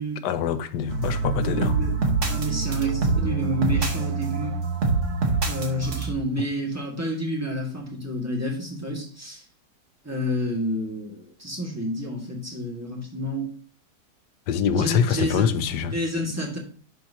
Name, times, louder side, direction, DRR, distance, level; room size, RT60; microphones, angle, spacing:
voice 1, 0.2-1.8 14.5-15.9, left 7 dB, 80° left, 1.3 m, -24 dB
sound 1, 0.9-6.1, right 4 dB, 45° right, 1.5 m, -25 dB
voice 2, 1.3-1.9 2.2-4.6 5.4-9.4 10.0-13.5 14.8-16.6, equal, 10° right, 1.9 m, -29 dB
11.5 x 4.6 x 2.8 m
omnidirectional pair, 1.8 m